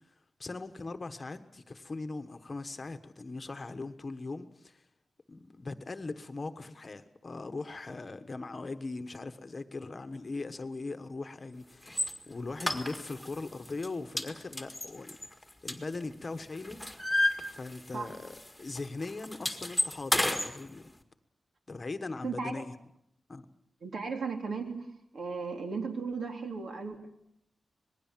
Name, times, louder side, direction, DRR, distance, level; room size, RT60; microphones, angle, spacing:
voice 1, 0.4-4.8 5.3-15.2 15.6-16.8 17.5-20.9 21.7-22.7 23.3-23.5, left 3 dB, 30° left, 9 dB, 1.2 m, -40 dB
sound 1, 11.9-12.1 12.6-13.3 13.7-13.9 14.2-16.2 16.5-18.0 18.3-18.5 18.8-20.5, left 1 dB, 5° left, 1.9 m, -31 dB
voice 2, 22.2-22.6 23.8-24.9 25.1-27.1, right 4 dB, 65° right, 4 dB, 3.5 m, -36 dB
26.5 x 20.0 x 7.4 m, 0.73 s
wide cardioid pair, 180°, 0 cm